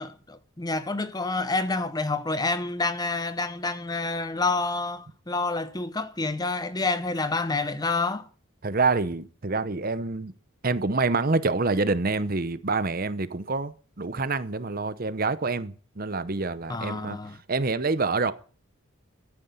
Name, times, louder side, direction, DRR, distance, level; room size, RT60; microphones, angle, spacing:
voice 1, 0.0-8.3 16.7-17.4, left 3 dB, 20° left, 0.8 m, -28 dB
voice 2, 8.6-10.3 10.6-17.2 17.5-18.3, right 3 dB, 40° right, 0.8 m, -27 dB
13.5 x 9.6 x 8.2 m
head